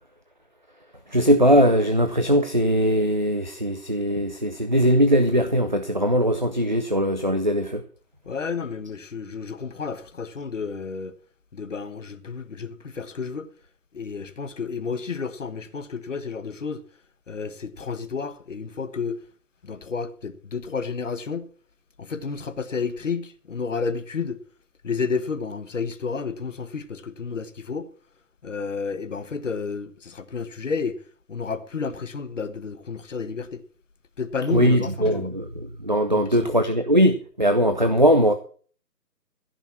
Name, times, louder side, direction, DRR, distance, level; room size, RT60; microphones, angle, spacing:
voice 1, 1.1-7.8 34.5-38.3, equal, 30° right, 0.5 m, -20 dB
voice 2, 8.3-11.2 11.5-13.5 13.9-16.8 17.3-19.2 19.6-21.5 22.0-24.4 24.8-27.9 28.4-31.0 31.3-33.6 34.2-35.3 36.1-36.5, left 5 dB, 50° left, 1.3 m, -31 dB
15.0 x 5.9 x 7.1 m
figure-of-eight pair, 150°, 49 cm